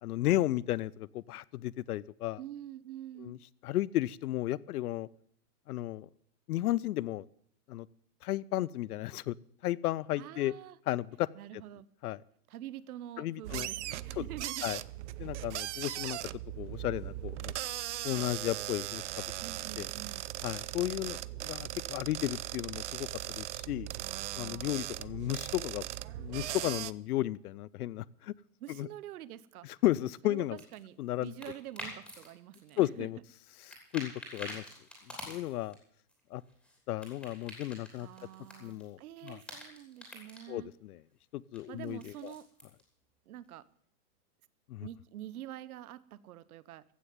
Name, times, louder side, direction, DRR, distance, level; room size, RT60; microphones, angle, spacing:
voice 1, 0.0-2.4 3.2-3.4 3.6-5.1 5.7-6.1 6.5-7.3 7.7-7.9 8.2-9.3 9.6-10.5 10.9-11.3 12.0-12.2 13.2-13.7 14.2-14.3 14.6-14.8 15.2-16.2 16.6-17.5 18.0-19.2 19.8-19.9 20.4-23.9 24.4-25.9 26.2-28.3 28.8-28.9 29.6-30.6 31.0-31.3 32.8-33.2 33.9-34.6 35.3-35.8 36.3-36.4 36.9-38.1 38.6-39.4 40.5-41.0 41.3-42.3 44.7-44.9, left 15 dB, 70° left, 22 dB, 0.6 m, -34 dB
voice 2, 2.4-3.4 10.2-10.8 11.3-11.9 12.5-14.7 19.4-20.2 24.0-24.8 28.6-29.7 30.2-30.4 30.7-33.1 38.0-40.7 41.7-42.5 43.3-43.6 44.8-46.8, right 12 dB, 70° right, 18 dB, 0.9 m, -46 dB
sound 1, 13.4-26.9, right 14 dB, 50° right, 0.5 m, -39 dB
sound 2, 30.4-32.3 32.5-33.4 33.7-35.7 36.1-38.9 39.2-40.4 41.5-42.8, left 1 dB, ahead, 3.0 m, -47 dB
15.5 x 6.7 x 9.2 m, 0.64 s
supercardioid pair, 170°, 46 cm